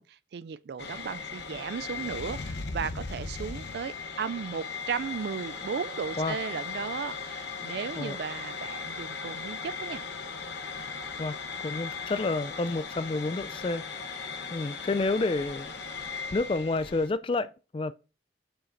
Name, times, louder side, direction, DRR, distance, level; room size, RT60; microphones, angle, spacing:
voice 1, 0.0-10.0, right 6 dB, 65° right, 0.3 m, -35 dB
sound 1, 0.8-17.1, left 5 dB, 70° left, 0.8 m, -38 dB
voice 2, 11.6-13.8 14.5-15.7 16.3-17.9, left 3 dB, 30° left, 0.3 m, -29 dB
7.1 x 5.7 x 2.6 m
head